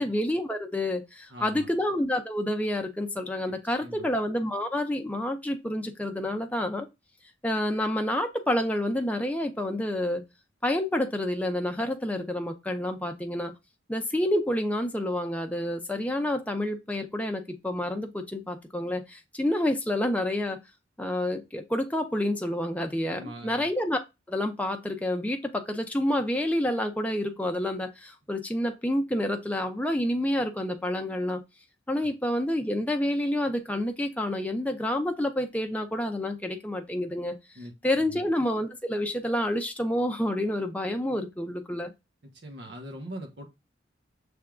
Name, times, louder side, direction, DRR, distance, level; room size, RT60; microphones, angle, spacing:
voice 1, 0.0-6.9 7.4-10.2 10.6-13.5 13.9-20.6 21.0-24.0 24.3-31.4 31.9-37.4 37.8-41.9, left 1 dB, 10° left, 0.6 m, -28 dB
voice 2, 1.3-1.7 3.8-4.1 23.1-23.6 32.0-32.1 37.5-37.7 38.1-38.3 42.3-43.5, right 1 dB, 65° right, 1.1 m, -41 dB
6.2 x 3.4 x 2.3 m
head